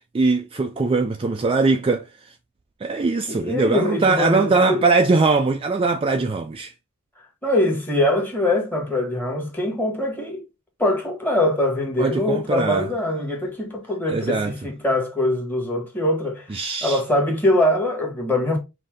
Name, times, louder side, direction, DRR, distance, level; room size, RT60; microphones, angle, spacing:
voice 1, 0.1-2.0 2.8-6.7 12.0-12.9 14.1-14.5 16.5-17.0, right 3 dB, 25° right, 0.4 m, -21 dB
voice 2, 3.3-4.8 7.4-10.4 10.8-18.6, left 1 dB, 10° left, 1.5 m, -23 dB
5.4 x 2.8 x 3.6 m
head